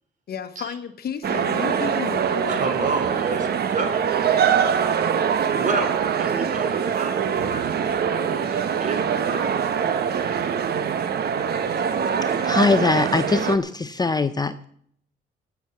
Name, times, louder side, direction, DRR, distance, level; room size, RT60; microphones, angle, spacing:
voice 1, 0.3-2.6, left 7 dB, 60° left, 1.1 m, -32 dB
sound 1, 1.2-13.6, right 7 dB, 60° right, 1.2 m, -23 dB
voice 2, 2.5-4.0 5.5-5.9 6.2-9.6, right 4 dB, 45° right, 3.6 m, -30 dB
voice 3, 12.2-14.7, left 3 dB, 20° left, 0.6 m, -22 dB
17.5 x 7.2 x 7.1 m
cardioid pair, 110°, 19 cm